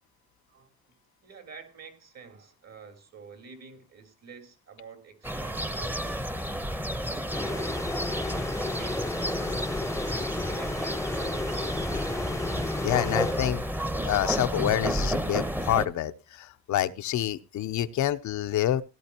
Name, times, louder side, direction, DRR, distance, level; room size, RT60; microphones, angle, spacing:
voice 1, 1.2-9.2 10.0-12.5, right 5 dB, 60° right, 3.5 m, -49 dB
sound 1, 5.2-15.9, equal, 5° right, 0.9 m, -31 dB
sound 2, 7.3-14.0, left 3 dB, 10° left, 0.6 m, -34 dB
voice 2, 12.8-13.6 14.0-18.8, left 12 dB, 70° left, 0.8 m, -27 dB
17.0 x 11.5 x 2.9 m
cardioid pair, 90°, 30 cm